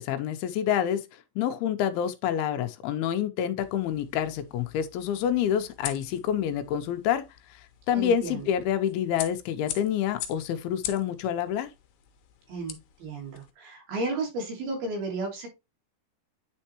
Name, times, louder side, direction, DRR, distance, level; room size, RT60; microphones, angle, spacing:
voice 1, 0.0-7.2 7.5-11.7, left 9 dB, 90° left, 2.6 m, -28 dB
sound 1, 3.6-13.5, left 11 dB, 75° left, 2.4 m, -43 dB
voice 2, 7.9-8.4 12.5-12.7 13.0-15.5, right 2 dB, 80° right, 4.4 m, -33 dB
9.2 x 4.4 x 2.8 m
omnidirectional pair, 4.3 m